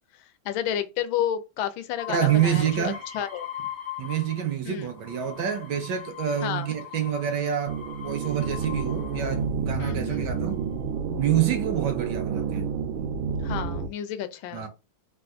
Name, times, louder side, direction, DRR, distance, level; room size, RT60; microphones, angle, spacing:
voice 1, 0.4-3.5 4.6-4.9 6.4-6.7 9.8-10.4 13.4-14.7, left 10 dB, 80° left, 1.4 m, -31 dB
sound 1, 2.0-4.5 4.9-9.4 10.2-10.7, left 10 dB, 55° left, 0.8 m, -40 dB
voice 2, 2.1-3.0 4.0-7.8 8.0-10.6 11.2-12.7 14.5-14.7, right 9 dB, 70° right, 1.1 m, -27 dB
sound 2, 7.7-13.9, right 5 dB, 90° right, 1.5 m, -30 dB
3.6 x 2.4 x 2.4 m
omnidirectional pair, 2.2 m